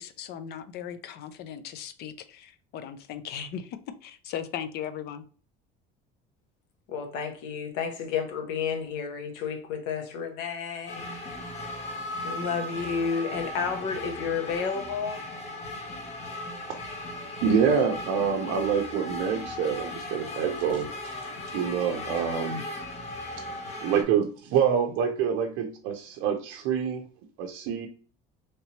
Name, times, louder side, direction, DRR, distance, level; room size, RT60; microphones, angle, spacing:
voice 1, 0.0-5.2, left 8 dB, 55° left, 0.5 m, -38 dB
voice 2, 6.9-11.1 12.2-15.2, left 6 dB, 85° left, 0.9 m, -31 dB
sound 1, 10.9-24.0, left 1 dB, 35° left, 0.9 m, -37 dB
voice 3, 17.4-21.1 21.5-22.7 23.8-27.0 27.4-27.9, right 7 dB, 75° right, 0.5 m, -26 dB
3.3 x 2.8 x 2.8 m
cardioid pair, 125°, 20 cm